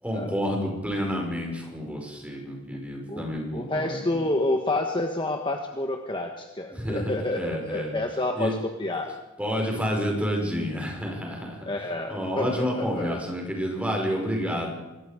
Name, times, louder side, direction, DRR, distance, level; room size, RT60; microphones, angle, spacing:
voice 1, 0.0-4.0 6.7-7.9 8.4-8.5 9.4-11.7 12.1-14.7, equal, 5° right, 0 dB, 5.5 m, -29 dB
voice 2, 3.1-9.1 11.6-13.2, left 2 dB, 20° left, 3 dB, 1.4 m, -29 dB
25.0 x 22.0 x 5.1 m, 1.1 s
head